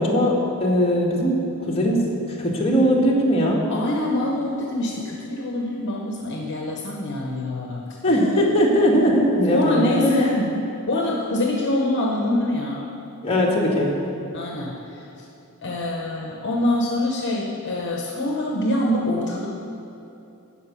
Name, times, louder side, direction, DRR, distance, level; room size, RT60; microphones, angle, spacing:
voice 1, 0.0-1.4 1.6-3.6 8.0-10.3 13.2-14.1, equal, 25° left, -3 dB, 1.8 m, -20 dB
voice 2, 3.7-7.8 9.5-10.5 10.9-12.8 14.3-15.0 15.6-19.5, left 1 dB, 55° left, -1 dB, 1.1 m, -25 dB
13.0 x 5.0 x 8.5 m, 2.8 s
head